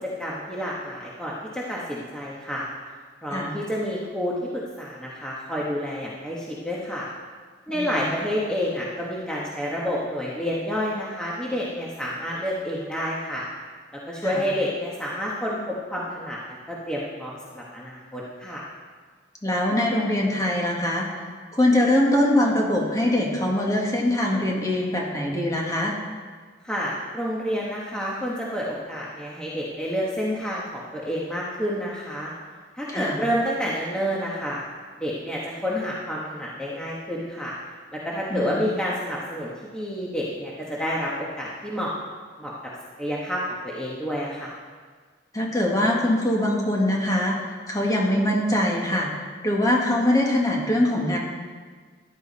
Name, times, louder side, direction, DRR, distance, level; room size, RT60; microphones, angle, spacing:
voice 1, 0.2-2.7 3.2-7.1 7.7-13.5 14.1-16.4 16.7-18.6 26.6-32.3 32.8-34.6 35.0-37.5 37.9-41.9 42.4-42.5 43.0-44.5, equal, 5° left, -5 dB, 1.5 m, -29 dB
voice 2, 7.7-8.1 14.2-14.4 19.4-21.1 21.5-26.0 32.9-33.2 38.3-38.6 45.3-47.4 47.7-49.1 49.4-51.2, left 1 dB, 20° left, -2 dB, 2.0 m, -23 dB
14.5 x 11.0 x 4.2 m, 1.5 s
head